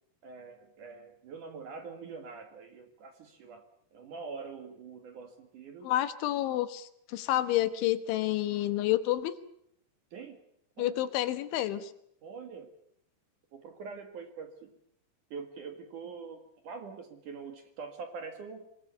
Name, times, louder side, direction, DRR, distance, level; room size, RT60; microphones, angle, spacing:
voice 1, 0.2-3.7 3.9-5.9 10.1-10.4 10.8-10.9 12.2-12.7 13.5-14.7 15.3-18.7, right 5 dB, 55° right, 7 dB, 2.6 m, -44 dB
voice 2, 5.8-9.3 10.8-11.9, left 14 dB, 80° left, 12 dB, 3.6 m, -29 dB
26.0 x 20.0 x 8.2 m, 0.71 s
omnidirectional pair, 5.4 m